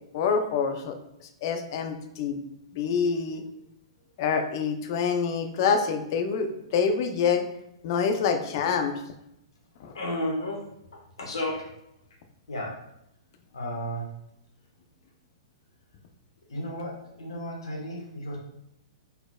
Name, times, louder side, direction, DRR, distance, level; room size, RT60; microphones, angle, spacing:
voice 1, 0.1-0.9 1.4-2.4 2.7-3.4 4.2-7.4 7.8-8.9 9.8-9.9, left 6 dB, 50° left, 6 dB, 0.6 m, -26 dB
voice 2, 9.9-10.7 11.2-11.7 12.5-12.8 13.5-14.1 16.5-18.4, left 1 dB, 70° left, -1 dB, 1.3 m, -33 dB
4.3 x 3.9 x 2.3 m, 0.80 s
figure-of-eight pair, 110°, 3 cm